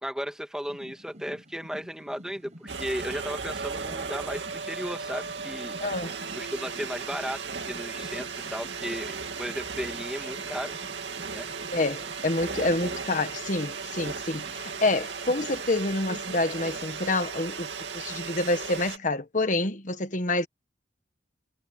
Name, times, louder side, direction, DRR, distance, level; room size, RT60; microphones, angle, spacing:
voice 1, 0.0-5.8 6.4-10.7 11.3-11.5, equal, 5° right, 1.8 m, -35 dB
sound 1, 0.6-15.8, equal, 40° right, 5.7 m, -50 dB
sound 2, 2.7-19.0, right 5 dB, 85° right, 2.4 m, -36 dB
voice 2, 5.8-6.1 11.7-17.7 17.9-20.5, left 2 dB, 45° left, 1.4 m, -27 dB
head